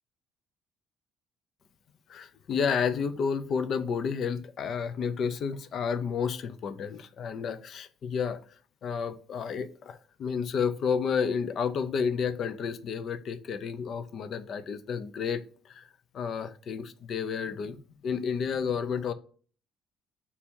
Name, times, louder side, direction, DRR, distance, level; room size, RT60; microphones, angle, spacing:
voice 1, 2.1-8.4 8.8-15.9 16.1-17.8 18.0-19.1, left 6 dB, 55° left, 0.5 m, -31 dB
3.5 x 2.8 x 4.3 m
cardioid pair, 90°, 0 cm